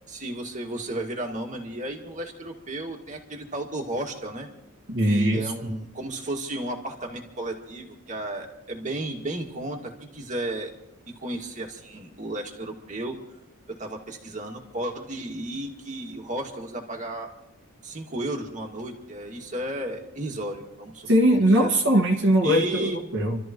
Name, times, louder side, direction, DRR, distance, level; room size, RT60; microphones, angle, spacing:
voice 1, 0.1-4.5 5.0-10.7 11.1-13.2 13.7-17.3 17.8-21.7 22.4-23.0, right 1 dB, 35° right, 1 dB, 2.2 m, -33 dB
voice 2, 4.9-5.5 21.1-23.4, equal, 55° right, -1 dB, 1.8 m, -21 dB
28.5 x 13.5 x 3.1 m, 0.86 s
head